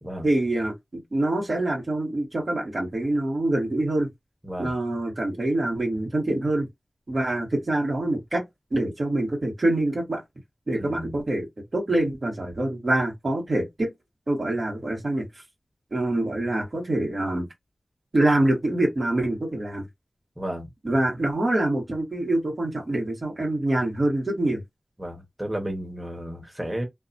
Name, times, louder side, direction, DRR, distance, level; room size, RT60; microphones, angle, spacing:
voice 1, 0.2-4.1 4.6-6.7 7.1-8.4 8.7-10.2 10.7-11.5 11.7-13.9 14.3-15.2 15.9-17.5 18.1-19.9 20.8-24.6, right 1 dB, 60° right, 1.4 m, -25 dB
voice 2, 10.7-11.2 20.4-20.7 25.0-26.8, equal, 15° right, 1.1 m, -33 dB
2.6 x 2.3 x 2.6 m
wide cardioid pair, 60°, 0 cm